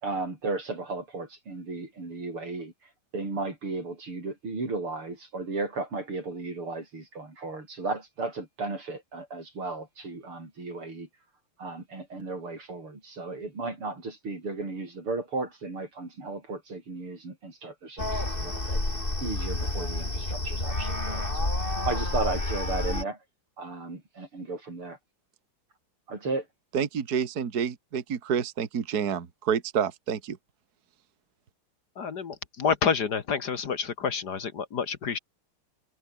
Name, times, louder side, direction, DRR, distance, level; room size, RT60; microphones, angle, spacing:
voice 1, 0.0-2.7 3.1-11.1 11.6-18.8 19.2-21.5 21.9-23.2 23.6-25.0 26.1-26.4, right 3 dB, 85° right, 7.2 m, -35 dB
sound 1, 18.0-23.0, left 2 dB, 25° left, 4.8 m, -29 dB
voice 2, 26.7-30.4, right 7 dB, 45° right, 2.1 m, -28 dB
voice 3, 32.0-35.2, left 6 dB, 50° left, 1.9 m, -28 dB
omnidirectional pair, 2.3 m